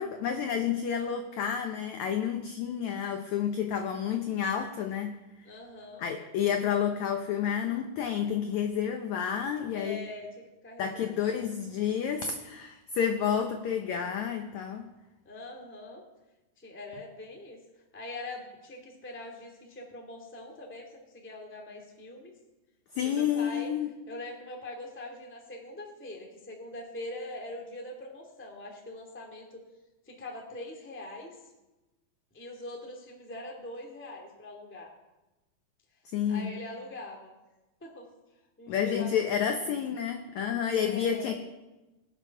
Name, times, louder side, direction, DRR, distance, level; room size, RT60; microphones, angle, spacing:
voice 1, 0.0-5.1 6.0-10.0 10.8-14.9 22.9-23.9 36.0-36.5 38.7-41.4, left 8 dB, 85° left, 5 dB, 1.6 m, -30 dB
voice 2, 5.4-6.1 9.7-11.4 15.2-16.0 16.6-17.6 17.9-22.3 23.0-23.7 24.1-29.6 30.1-31.4 32.3-34.9 36.3-37.4 37.8-38.1 38.6-39.2 39.5-39.7 40.8-41.4, left 2 dB, 5° left, 1 dB, 1.0 m, -43 dB
20.5 x 7.0 x 5.8 m, 1.1 s
omnidirectional pair, 4.4 m